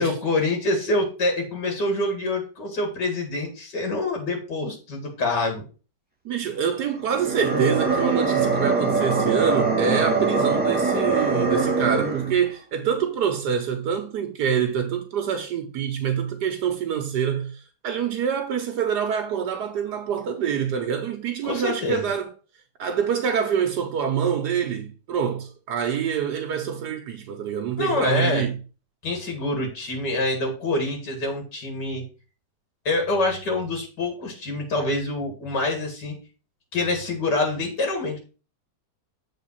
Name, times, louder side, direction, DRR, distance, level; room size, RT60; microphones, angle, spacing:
voice 1, 0.0-5.6 21.4-22.0 27.8-28.5 29.0-32.0 32.8-36.2 36.7-38.2, left 2 dB, 80° left, 2.6 m, -26 dB
voice 2, 6.2-22.3 22.8-28.6, right 7 dB, 75° right, 1.4 m, -26 dB
sound 1, 7.1-12.4, right 3 dB, 5° right, 1.9 m, -23 dB
7.5 x 3.8 x 5.5 m
omnidirectional pair, 1.8 m